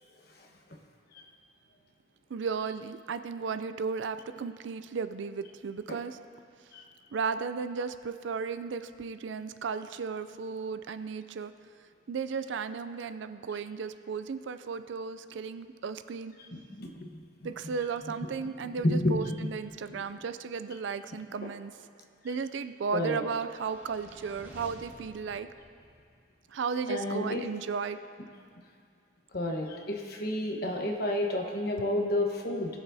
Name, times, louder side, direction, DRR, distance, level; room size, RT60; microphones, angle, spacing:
voice 1, 2.3-6.2 7.1-11.5 12.1-16.3 17.4-21.7 22.2-25.5 26.5-28.0, right 5 dB, 70° right, 11 dB, 0.4 m, -35 dB
voice 2, 16.8-17.2 18.8-19.5 22.9-23.2 26.9-27.4 29.3-32.8, left 1 dB, 50° left, 1 dB, 1.2 m, -30 dB
sound 1, 23.0-26.4, equal, 10° right, 2.0 m, -53 dB
20.5 x 7.1 x 2.7 m, 2.2 s
head